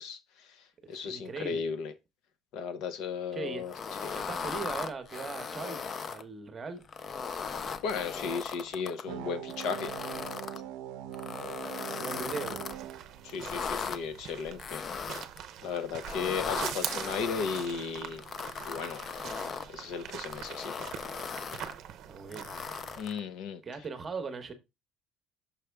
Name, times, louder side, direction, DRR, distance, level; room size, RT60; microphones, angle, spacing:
voice 1, 0.0-1.9 2.5-3.7 4.0-4.2 7.8-9.9 13.2-14.8 15.6-18.2 18.6-19.0 19.3-19.4 19.7-20.9 23.0-23.6, left 6 dB, 60° left, 0.7 m, -35 dB
voice 2, 0.8-1.6 3.3-3.6 4.1-6.8 12.0-12.6 22.1-22.5 23.6-24.5, right 4 dB, 20° right, 0.9 m, -39 dB
sound 1, 3.7-6.2 6.8-9.0 9.5-10.6 11.1-12.8 13.3-14.0 14.6-15.4 16.0-17.7 18.2-19.7 20.2-21.7 22.3-23.2, left 5 dB, 30° left, 0.4 m, -38 dB
sound 2, 9.1-14.1, right 11 dB, 85° right, 0.5 m, -42 dB
Footsteps forest, 12.7-23.1, right 10 dB, 45° right, 0.7 m, -43 dB
5.9 x 5.0 x 3.4 m
cardioid pair, 165°, 0 cm